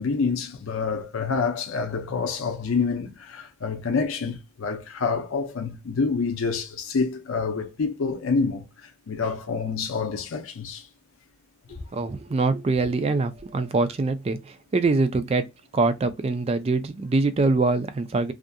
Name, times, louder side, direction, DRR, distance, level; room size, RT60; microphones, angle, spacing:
voice 1, 0.0-10.9 11.7-12.1, left 4 dB, 80° left, 0.5 m, -27 dB
voice 2, 11.9-15.4 15.7-18.3, right 3 dB, 30° right, 0.3 m, -24 dB
2.6 x 2.4 x 2.2 m
head